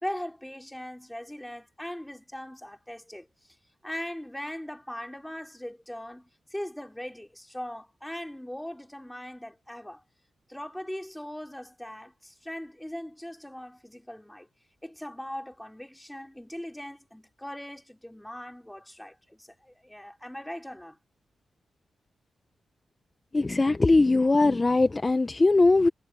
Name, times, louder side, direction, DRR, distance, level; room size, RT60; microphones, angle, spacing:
voice 1, 0.0-3.6 3.8-10.0 10.5-14.5 14.8-21.0, left 1 dB, 5° left, 3.7 m, -40 dB
voice 2, 23.3-25.9, left 3 dB, 30° left, 1.6 m, -21 dB
supercardioid pair, 45°, 0 cm